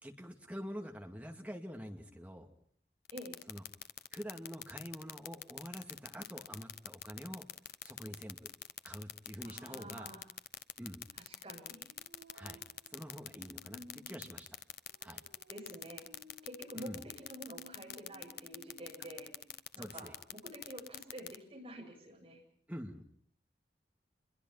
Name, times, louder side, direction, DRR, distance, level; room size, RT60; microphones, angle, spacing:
voice 1, 0.0-2.5 3.5-3.6 4.1-7.5 7.8-8.5 8.8-10.1 10.8-11.0 12.3-12.6 12.9-14.6 15.0-15.2 16.7-17.0 19.8-20.1 22.7-23.0, equal, 10° right, 3 dB, 2.3 m, -46 dB
sound 1, 3.1-21.4, left 12 dB, 60° left, 0.9 m, -43 dB
voice 2, 9.4-10.2 11.3-11.8 15.5-16.1 16.4-16.9 17.2-19.3 19.7-22.4, right 1 dB, 30° right, 0 dB, 7.8 m, -49 dB
Female singing, 11.9-19.6, equal, 85° right, 6.4 m, -58 dB
27.0 x 22.0 x 5.7 m, 0.63 s
head